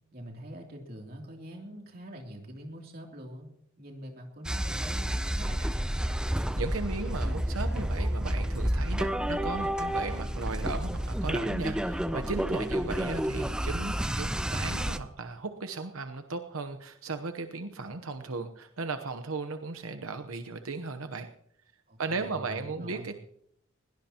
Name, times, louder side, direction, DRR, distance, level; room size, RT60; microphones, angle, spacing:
voice 1, 0.1-3.5 3.8-6.2 21.9-23.1, right 1 dB, 45° right, 1 dB, 3.0 m, -44 dB
sound 1, 4.4-15.0, equal, 5° right, 0.5 m, -30 dB
voice 2, 6.3-21.3 22.0-23.2, right 3 dB, 85° right, 7 dB, 1.0 m, -36 dB
21.0 x 17.5 x 2.9 m, 0.71 s
head